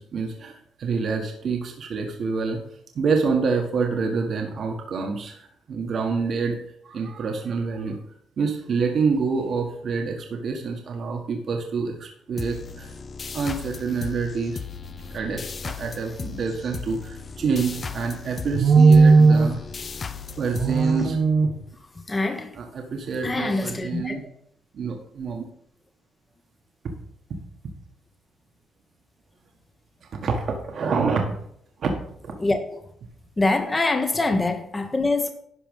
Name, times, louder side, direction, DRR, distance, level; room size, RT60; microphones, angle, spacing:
voice 1, 0.0-2.6 2.9-6.6 6.8-8.0 8.4-12.9 13.3-14.6 15.1-19.6 20.0-20.1 20.4-21.5 22.6-24.2 24.7-25.4 26.8-26.9 27.3-27.4 27.6-27.7 30.0-31.3 31.8-31.9 32.2-32.4, right 4 dB, 60° right, 2 dB, 1.5 m, -24 dB
sound 1, 12.4-21.6, left 5 dB, 40° left, 0.7 m, -36 dB
voice 2, 22.1-22.6 23.2-24.2 32.4-32.9 33.4-35.3, left 2 dB, 20° left, 5 dB, 1.2 m, -24 dB
11.5 x 5.1 x 5.4 m, 0.70 s
cardioid pair, 90°, 0 cm